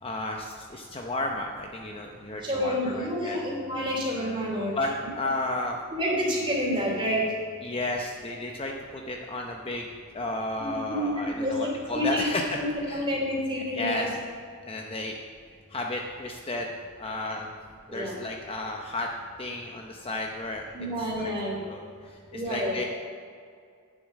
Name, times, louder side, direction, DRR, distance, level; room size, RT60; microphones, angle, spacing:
voice 1, 0.0-3.4 4.8-4.9 5.1-5.8 7.6-12.4 12.8-13.1 13.7-14.1 14.7-15.2 15.7-16.7 17.0-17.6 17.9-19.1 19.4-20.7 21.2-21.3 21.7-22.8, left 2 dB, 25° left, 1 dB, 0.7 m, -33 dB
voice 2, 2.4-4.7 5.9-7.2 10.6-12.3 12.5-14.1 17.9-18.2 20.7-21.6 22.3-22.8, equal, 25° right, -4 dB, 3.1 m, -29 dB
9.5 x 7.5 x 7.4 m, 2.2 s
head